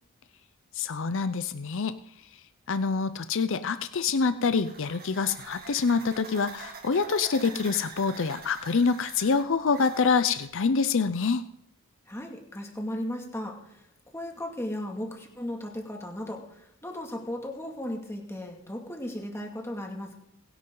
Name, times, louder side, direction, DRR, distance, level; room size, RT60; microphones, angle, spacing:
voice 1, 0.7-2.0 2.7-11.4, left 5 dB, 60° left, 12 dB, 0.5 m, -26 dB
sound 1, 4.3-10.5, right 5 dB, 45° right, 1.8 m, -45 dB
voice 2, 12.1-13.8 14.1-20.1, left 1 dB, 10° left, 1 dB, 2.2 m, -36 dB
21.5 x 11.0 x 3.9 m, 0.77 s
head